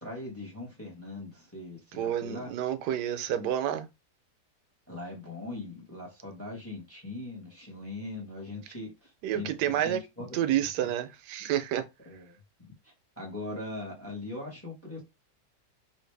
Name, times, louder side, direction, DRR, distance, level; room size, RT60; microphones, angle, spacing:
voice 1, 0.0-2.5 4.9-10.9 12.1-12.3 12.8-15.0, left 2 dB, 10° left, 0.8 m, -41 dB
voice 2, 1.9-3.9 9.2-10.0 10.3-11.8, right 11 dB, 80° right, 1.1 m, -29 dB
3.1 x 2.5 x 3.3 m
omnidirectional pair, 1.8 m